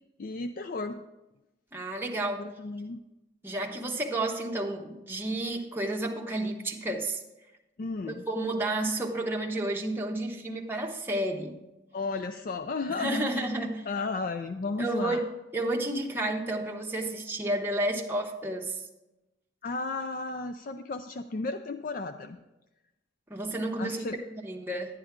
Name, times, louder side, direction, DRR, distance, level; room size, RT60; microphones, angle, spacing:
voice 1, 0.2-1.0 2.4-3.0 7.8-8.2 11.9-15.2 19.6-22.4 23.8-24.2, left 3 dB, 50° left, 8 dB, 0.4 m, -34 dB
voice 2, 1.7-2.5 3.4-7.2 8.3-11.6 13.0-13.8 14.8-18.8 23.3-24.9, right 1 dB, 10° right, 0 dB, 0.9 m, -31 dB
10.5 x 9.8 x 3.6 m, 0.98 s
head